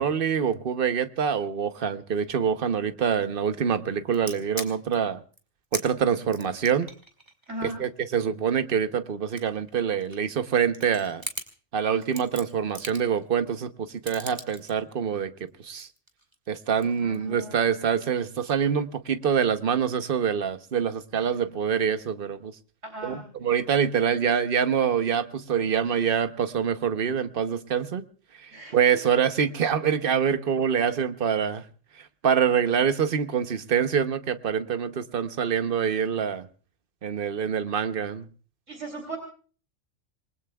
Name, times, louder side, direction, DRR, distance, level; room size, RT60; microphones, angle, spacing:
voice 1, 0.0-5.2 5.7-6.9 7.6-11.2 11.7-15.3 15.6-15.9 16.5-22.5 23.0-28.0 28.4-31.6 32.0-36.5 37.0-38.3, right 7 dB, 50° right, 10 dB, 1.0 m, -25 dB
sound 1, 4.1-5.0 5.3-5.4 5.7-5.9 6.3-8.6 9.1-10.4 10.7-11.5 12.0-13.2 14.1-14.7 15.5-16.5 16.8-17.2, right 2 dB, 20° right, 2.0 m, -39 dB
voice 2, 7.5-7.8 17.0-17.8 21.3-21.4 22.8-23.2 28.5-28.8 38.7-39.2, right 1 dB, 75° right, 1 dB, 3.8 m, -37 dB
27.5 x 20.5 x 2.3 m, 0.40 s
omnidirectional pair, 1.3 m